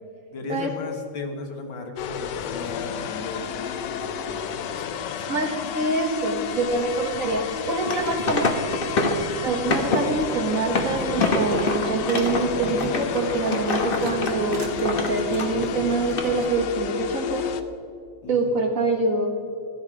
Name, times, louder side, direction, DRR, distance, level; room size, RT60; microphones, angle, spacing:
voice 1, 0.3-5.2 9.3-9.7 18.2-18.6, left 3 dB, 90° left, 3 dB, 2.2 m, -36 dB
sound 1, 2.0-17.6, left 7 dB, 70° left, 1.2 m, -32 dB
voice 2, 5.3-8.5 9.4-17.5 18.3-19.3, right 3 dB, 45° right, 2 dB, 1.8 m, -25 dB
sound 2, 6.4-16.5, right 4 dB, 75° right, 2.0 m, -40 dB
sound 3, 7.7-9.3 9.7-10.0 10.5-15.7 16.1-16.2, left 3 dB, 35° left, 1.1 m, -26 dB
14.0 x 10.5 x 5.0 m, 2.5 s
omnidirectional pair, 2.1 m